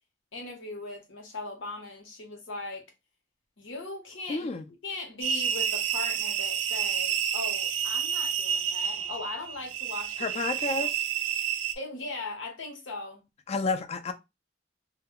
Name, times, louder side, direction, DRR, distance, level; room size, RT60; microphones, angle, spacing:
voice 1, 0.3-2.8 3.6-4.5 4.8-10.4 10.8-10.9 11.8-13.2, left 3 dB, 90° left, 0.9 m, -39 dB
voice 2, 4.3-4.6 10.2-10.9 13.5-14.1, left 3 dB, 35° left, 0.4 m, -30 dB
sound 1, 5.2-11.7, right 9 dB, 75° right, 0.4 m, -29 dB
2.2 x 2.1 x 3.6 m
head